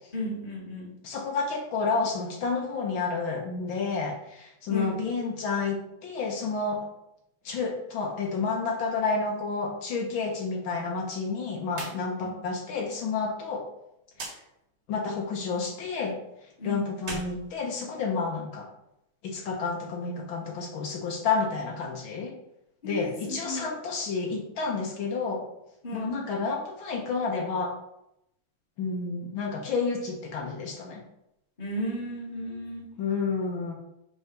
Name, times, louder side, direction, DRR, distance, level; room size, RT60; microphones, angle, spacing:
voice 1, 0.1-0.9 4.7-5.0 12.2-12.4 16.6-16.9 22.8-23.7 25.8-26.2 31.6-32.9, equal, 25° left, -4 dB, 1.7 m, -34 dB
voice 2, 1.0-6.8 7.4-13.6 14.9-16.2 16.6-18.7 19.2-22.3 22.8-25.4 25.9-27.7 28.8-31.0 33.0-33.7, left 4 dB, 75° left, 0 dB, 1.7 m, -30 dB
sound 1, 11.7-12.0 12.3-12.4 14.1-14.4 16.9-18.3, right 2 dB, 55° right, 2.3 m, -39 dB
5.7 x 4.1 x 4.6 m, 0.82 s
omnidirectional pair, 2.2 m